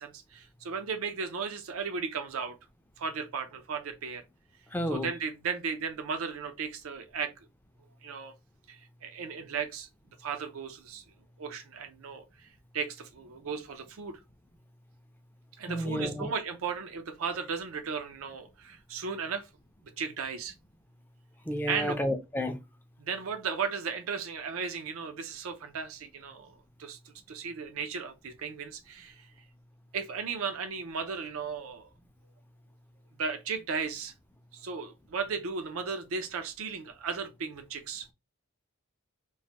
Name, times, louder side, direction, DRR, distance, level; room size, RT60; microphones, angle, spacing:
voice 1, 0.0-2.6 3.0-4.2 4.9-7.5 8.0-8.3 8.7-9.9 10.2-11.0 11.4-12.5 12.7-14.2 15.6-19.5 20.0-20.5 21.7-22.0 23.0-29.3 29.9-31.9 33.2-34.1 34.5-38.1, right 5 dB, 65° right, 0.5 m, -35 dB
voice 2, 4.7-5.1 15.7-16.3 21.5-22.6, equal, 10° left, 0.4 m, -31 dB
3.1 x 2.1 x 2.7 m
head